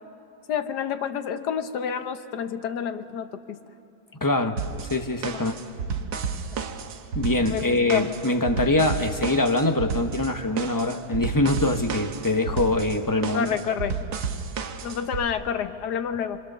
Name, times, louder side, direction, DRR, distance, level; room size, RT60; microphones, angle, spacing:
voice 1, 0.5-3.6 5.3-5.6 6.5-6.6 7.5-8.0 13.3-14.0 14.8-16.4, left 8 dB, 80° left, 9 dB, 1.5 m, -29 dB
voice 2, 4.2-4.6 4.9-5.5 7.1-13.5, left 2 dB, 15° left, 5 dB, 0.7 m, -23 dB
sound 1, 4.6-15.2, right 5 dB, 75° right, 1.5 m, -32 dB
26.0 x 25.5 x 6.7 m, 2.6 s
omnidirectional pair, 1.8 m